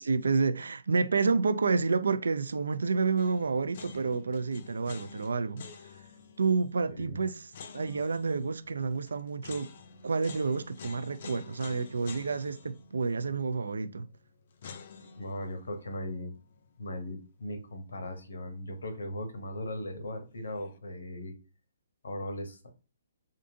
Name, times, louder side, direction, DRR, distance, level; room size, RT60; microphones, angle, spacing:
voice 1, 0.0-5.6 6.4-7.5 7.7-9.7 10.0-14.1, right 4 dB, 75° right, 0.3 m, -29 dB
sound 1, 3.2-18.2 18.4-18.5 20.3-20.8, left 5 dB, 55° left, 0.5 m, -50 dB
voice 2, 15.2-16.3 16.8-21.3 22.0-22.7, left 1 dB, 75° left, 0.9 m, -38 dB
3.5 x 2.5 x 2.6 m
figure-of-eight pair, 130°, 0 cm